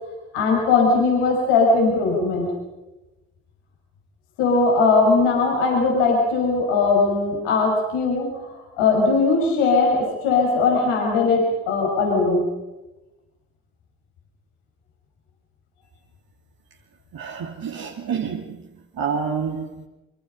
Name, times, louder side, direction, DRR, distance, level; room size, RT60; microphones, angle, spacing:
voice 1, 0.3-2.5 4.4-8.3 8.8-12.4, left 3 dB, 75° left, 0 dB, 6.1 m, -19 dB
voice 2, 17.1-18.6 19.0-19.9, right 6 dB, 55° right, -1 dB, 2.9 m, -28 dB
25.5 x 25.5 x 5.5 m, 1.0 s
hypercardioid pair, 45°, 43 cm